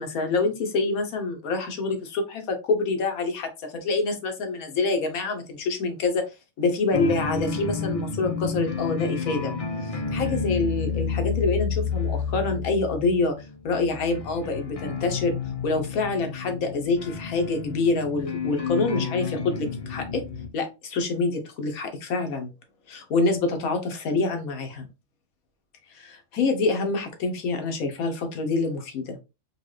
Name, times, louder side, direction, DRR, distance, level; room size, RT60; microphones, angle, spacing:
voice 1, 0.0-3.5 3.8-6.2 6.6-9.5 9.8-13.3 13.6-15.3 15.6-20.2 20.5-22.5 22.9-24.9 25.9-29.2, left 3 dB, 90° left, 6 dB, 1.4 m, -26 dB
sound 1, 6.9-20.5, left 5 dB, 65° left, 0.3 m, -30 dB
4.4 x 2.3 x 3.1 m, 0.27 s
omnidirectional pair, 1.4 m